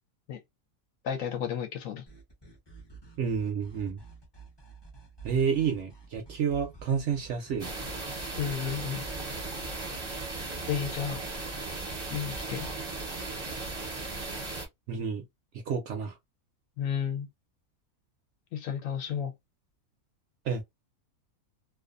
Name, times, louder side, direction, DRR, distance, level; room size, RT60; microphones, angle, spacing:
voice 1, 1.0-2.0 8.4-9.0 10.7-11.2 12.1-12.7 16.8-17.3 18.5-19.3, left 8 dB, 70° left, 0.9 m, -32 dB
sound 1, 2.1-9.7, right 5 dB, 25° left, 0.6 m, -50 dB
voice 2, 3.2-4.0 5.2-7.7 14.9-15.2 15.7-16.2 20.4-20.6, right 6 dB, 65° right, 0.7 m, -29 dB
sound 2, 7.6-14.7, right 2 dB, 25° right, 0.6 m, -36 dB
2.5 x 2.3 x 2.4 m
omnidirectional pair, 1.6 m